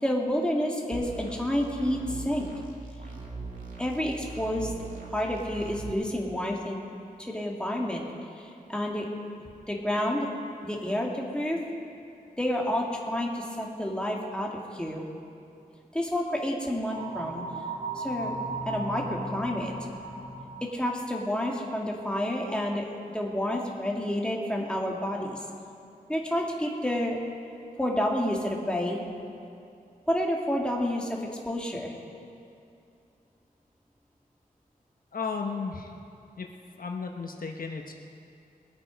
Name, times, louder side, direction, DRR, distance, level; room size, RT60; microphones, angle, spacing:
voice 1, 0.0-2.5 3.8-4.7 5.1-6.8 7.2-8.0 8.4-9.1 9.7-10.3 10.6-11.6 12.4-15.0 15.9-17.4 17.9-18.3 18.7-19.7 20.6-22.9 23.1-25.4 26.1-27.2 27.8-29.0 30.1-31.2 31.5-31.9, left 1 dB, 5° left, -2 dB, 2.0 m, -29 dB
sound 1, 0.9-5.9, right 3 dB, 60° right, 2.2 m, -40 dB
sound 2, 16.8-20.8, right 2 dB, 35° right, 2.5 m, -36 dB
voice 2, 35.1-35.9 36.4-36.5 36.8-37.9, left 5 dB, 70° left, 3 dB, 0.9 m, -34 dB
21.5 x 8.5 x 5.1 m, 2.6 s
wide cardioid pair, 90°, 15 cm